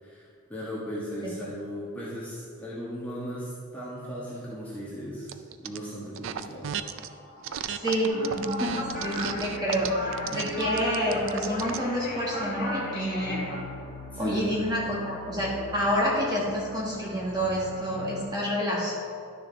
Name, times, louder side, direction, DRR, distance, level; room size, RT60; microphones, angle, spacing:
voice 1, 0.0-6.7 14.1-14.6, equal, 5° left, -9 dB, 1.3 m, -37 dB
sound 1, 5.3-5.8 6.1-7.1 7.4-11.9, right 9 dB, 60° right, 0.4 m, -35 dB
sound 2, 6.6-18.2, left 1 dB, 25° left, 1.0 m, -44 dB
voice 2, 7.7-13.5 14.2-18.9, equal, 20° right, -5 dB, 1.7 m, -28 dB
sound 3, 8.0-13.6, left 1 dB, 40° left, 1.5 m, -35 dB
11.0 x 6.6 x 3.4 m, 2.3 s
head